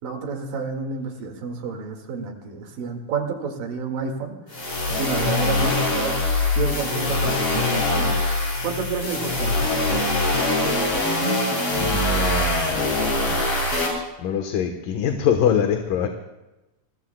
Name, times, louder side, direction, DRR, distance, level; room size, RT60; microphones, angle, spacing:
voice 1, 0.0-6.2 6.5-8.2 8.6-9.6, right 5 dB, 85° right, 3 dB, 3.8 m, -30 dB
sound 1, 4.5-13.9, left 2 dB, 45° left, 7.9 m, -23 dB
voice 2, 11.8-13.4 14.2-16.1, left 8 dB, 80° left, 4 dB, 2.8 m, -24 dB
28.5 x 21.0 x 2.3 m, 0.99 s
omnidirectional pair, 3.9 m